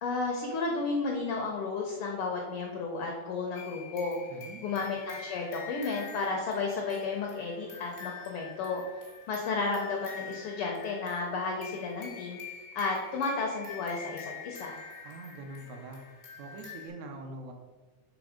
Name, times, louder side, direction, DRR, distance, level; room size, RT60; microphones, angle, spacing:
voice 1, 0.0-4.2 4.6-8.8 9.3-12.4 12.7-14.8, left 4 dB, 85° left, 1 dB, 1.2 m, -32 dB
sound 1, 3.5-16.9, left 6 dB, 60° left, 0.6 m, -46 dB
voice 2, 4.3-4.6 15.0-17.5, right 2 dB, 75° right, 3 dB, 1.9 m, -44 dB
6.2 x 3.4 x 4.9 m, 1.3 s
omnidirectional pair, 3.4 m